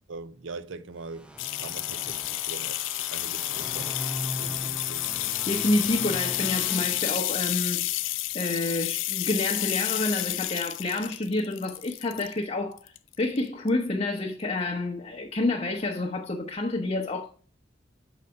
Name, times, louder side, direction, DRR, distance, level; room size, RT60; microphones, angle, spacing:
voice 1, 0.1-1.3 1.6-5.1, right 3 dB, 75° right, 0.6 m, -42 dB
sound 1, 1.0-7.7, equal, 5° right, 0.5 m, -40 dB
sound 2, 1.4-12.3 12.8-13.4 13.7-13.8, left 17 dB, 75° left, 0.3 m, -30 dB
voice 2, 5.5-7.8 8.3-17.3, left 2 dB, 35° left, 0.8 m, -28 dB
6.9 x 4.0 x 5.2 m
head